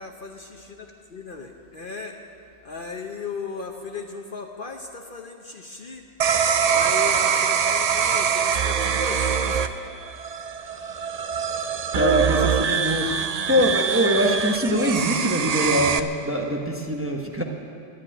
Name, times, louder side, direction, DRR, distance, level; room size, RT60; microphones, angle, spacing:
voice 1, 0.0-2.2 2.6-6.1 6.7-9.8, left 4 dB, 45° left, 3 dB, 0.9 m, -37 dB
sound 1, 6.2-16.0, right 7 dB, 65° right, 0.4 m, -23 dB
voice 2, 11.9-17.4, equal, 10° right, 1 dB, 1.0 m, -23 dB
12.5 x 10.0 x 9.9 m, 2.6 s
omnidirectional pair, 1.3 m